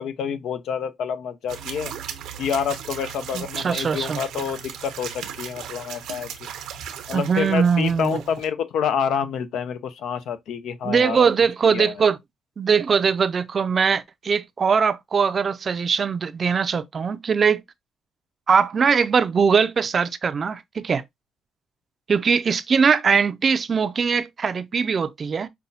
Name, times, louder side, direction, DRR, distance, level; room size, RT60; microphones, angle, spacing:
voice 1, 0.0-1.9 2.4-6.5 7.1-11.2 11.7-12.0, left 7 dB, 75° left, 0.5 m, -28 dB
sound 1, 1.5-8.5, right 9 dB, 85° right, 0.7 m, -37 dB
voice 2, 3.3-4.2 7.1-8.2 10.8-12.2 12.6-17.6 18.5-21.0 22.1-25.5, right 6 dB, 45° right, 0.4 m, -21 dB
5.4 x 2.2 x 2.6 m
cardioid pair, 90°, 0 cm